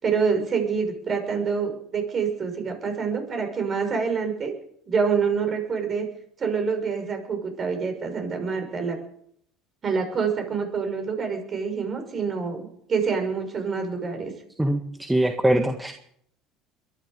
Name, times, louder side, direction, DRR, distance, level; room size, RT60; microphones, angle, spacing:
voice 1, 0.0-4.5 4.9-6.1 6.4-9.0 9.8-14.3, right 5 dB, 40° right, 5 dB, 6.6 m, -26 dB
voice 2, 14.6-15.9, right 1 dB, 10° right, 5 dB, 1.6 m, -22 dB
22.5 x 12.0 x 5.4 m, 0.67 s
hypercardioid pair, 75°, 0 cm